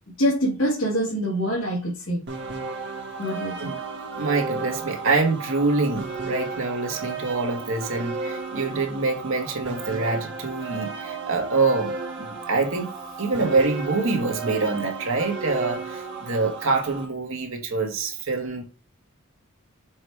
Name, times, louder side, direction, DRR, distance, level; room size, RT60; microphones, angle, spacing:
voice 1, 0.2-2.2 3.2-3.7, equal, 75° left, 2.6 m, -25 dB
sound 1, 2.3-17.0, right 4 dB, 55° right, 1.6 m, -34 dB
voice 2, 4.2-11.9 12.2-12.9 13.2-18.6, right 3 dB, 70° right, 1.5 m, -25 dB
6.2 x 3.4 x 4.8 m
head